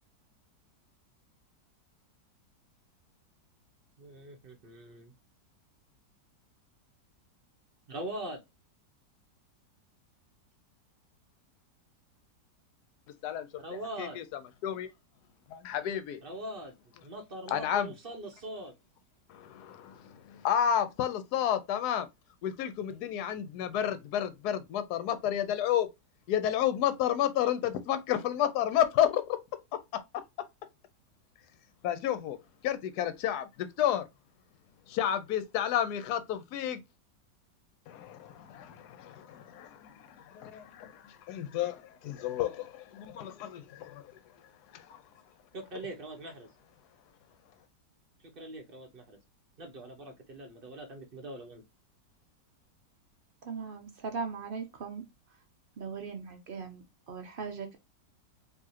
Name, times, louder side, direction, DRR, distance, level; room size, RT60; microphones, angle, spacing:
voice 1, 4.0-5.1 7.9-8.4 13.6-14.2 16.2-16.8 17.0-18.7 45.5-46.5 48.4-49.2 49.6-51.6, right 1 dB, 40° right, 1.0 m, -42 dB
voice 2, 15.5-16.2 17.5-17.9 19.4-19.9 20.4-22.1 22.4-25.9 26.3-29.2 31.8-32.4 32.6-33.5 33.8-34.0 34.9-36.8 37.9-39.9 40.3-40.9 41.3-44.0 44.7-44.8, left 10 dB, 70° left, 1.1 m, -30 dB
voice 3, 53.5-55.0 55.8-57.8, right 5 dB, 75° right, 0.5 m, -39 dB
4.7 x 2.9 x 2.8 m
omnidirectional pair, 1.9 m